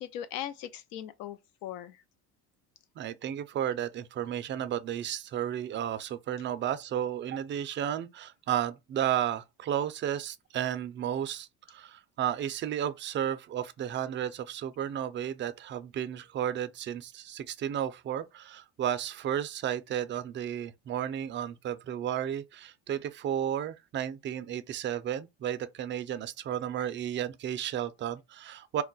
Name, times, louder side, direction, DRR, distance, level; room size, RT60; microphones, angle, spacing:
voice 1, 0.0-2.0, left 11 dB, 80° left, 0.6 m, -39 dB
voice 2, 3.0-28.8, right 10 dB, 30° right, 0.4 m, -33 dB
2.3 x 2.1 x 3.8 m
supercardioid pair, 105°, 37 cm